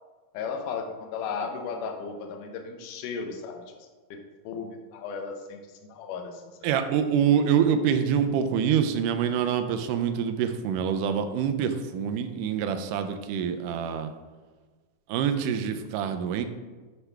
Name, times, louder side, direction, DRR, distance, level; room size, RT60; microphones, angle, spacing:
voice 1, 0.3-4.2 4.4-5.6 5.9-6.7, left 5 dB, 75° left, 3 dB, 2.3 m, -35 dB
voice 2, 6.6-14.1 15.1-16.5, right 8 dB, 80° right, 8 dB, 2.1 m, -25 dB
9.7 x 6.0 x 3.4 m, 1.3 s
omnidirectional pair, 3.9 m